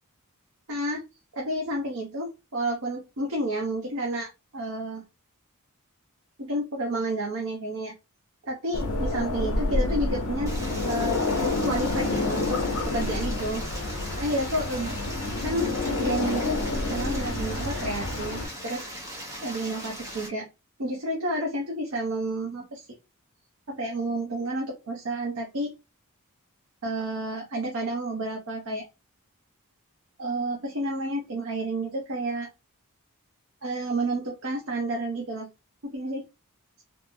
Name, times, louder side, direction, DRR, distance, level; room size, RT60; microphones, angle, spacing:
voice 1, 0.7-1.0 1.3-5.0 6.4-7.9 8.4-10.5 10.9-12.6 12.8-13.6 14.2-15.0 15.4-15.7 16.0-18.9 19.4-20.5 20.8-22.9 23.7-25.7 26.8-28.8 30.2-32.5 33.6-35.5 35.8-36.2, right 1 dB, 65° right, 0 dB, 0.7 m, -30 dB
sound 1, 8.7-18.5, left 2 dB, 70° left, 0.8 m, -28 dB
Stream, 10.5-20.3, equal, 15° right, 0.8 m, -40 dB
3.5 x 2.0 x 2.5 m, 0.26 s
head